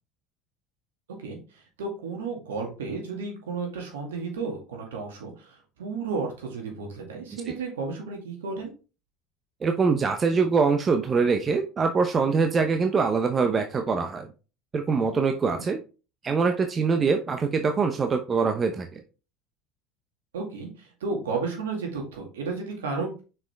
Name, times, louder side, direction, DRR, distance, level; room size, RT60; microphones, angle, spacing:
voice 1, 1.2-8.7 15.4-15.6 20.3-23.2, right 4 dB, 90° right, 1 dB, 2.1 m, -33 dB
voice 2, 9.6-14.3 14.7-15.8 16.2-19.0, right 5 dB, 30° right, 6 dB, 0.8 m, -24 dB
6.0 x 5.2 x 3.5 m, 0.33 s
hypercardioid pair, 85°, 0 cm